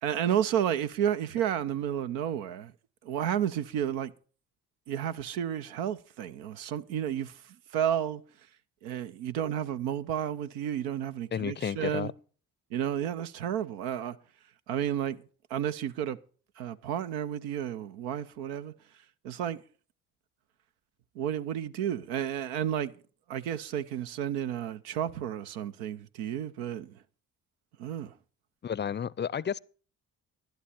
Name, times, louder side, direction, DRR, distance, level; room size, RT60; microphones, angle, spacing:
voice 1, 0.0-2.7 3.0-4.1 4.9-7.4 7.7-8.2 8.8-12.1 12.7-14.2 14.7-15.2 15.5-16.2 16.6-18.7 19.2-19.6 21.1-22.9 23.3-27.0 27.8-28.2, right 10 dB, 80° right, 0.7 m, -31 dB
voice 2, 11.3-12.1 28.6-29.6, left 8 dB, 30° left, 0.5 m, -32 dB
11.5 x 11.0 x 4.4 m
hypercardioid pair, 50°, 39 cm